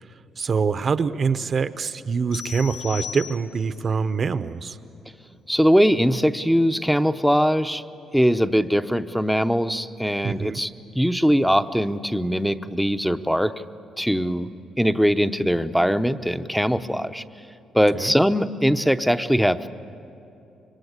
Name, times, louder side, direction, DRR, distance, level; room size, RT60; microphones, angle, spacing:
voice 1, 0.4-4.8 10.2-10.6 17.9-18.1, right 5 dB, 45° right, 12 dB, 0.9 m, -25 dB
sound 1, 2.3-3.8, left 8 dB, 70° left, 3.2 m, -37 dB
voice 2, 5.5-7.8 8.1-13.5 14.0-14.5 14.8-17.2 17.7-19.7, equal, ahead, 11 dB, 0.8 m, -21 dB
26.0 x 23.0 x 8.2 m, 2.8 s
cardioid pair, 90°, 0 cm